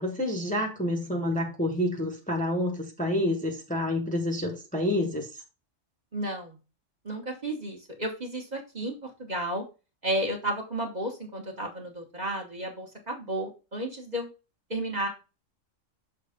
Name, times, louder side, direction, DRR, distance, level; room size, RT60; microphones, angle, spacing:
voice 1, 0.0-5.3, left 1 dB, 5° left, 0 dB, 1.1 m, -28 dB
voice 2, 6.1-6.6 7.0-9.6 10.0-14.3 14.7-15.1, right 1 dB, 35° right, 1 dB, 1.6 m, -32 dB
6.8 x 3.2 x 5.0 m, 0.30 s
omnidirectional pair, 1.4 m